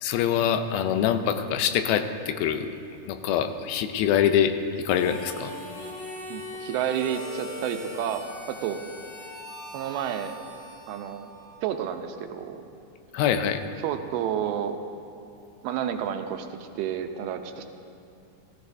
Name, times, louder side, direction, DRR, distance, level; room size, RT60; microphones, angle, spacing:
voice 1, 0.0-2.8 3.1-4.6 4.9-5.5 13.1-13.6, left 9 dB, 85° left, 9 dB, 2.5 m, -24 dB
Harmonica, 4.8-11.7, left 1 dB, 35° left, 3.3 m, -40 dB
voice 2, 6.3-8.8 9.7-10.3 10.9-11.3 11.6-12.6 13.8-14.8 15.6-17.6, right 9 dB, 90° right, 6 dB, 2.7 m, -30 dB
17.0 x 14.5 x 2.6 m, 2.4 s
omnidirectional pair, 4.4 m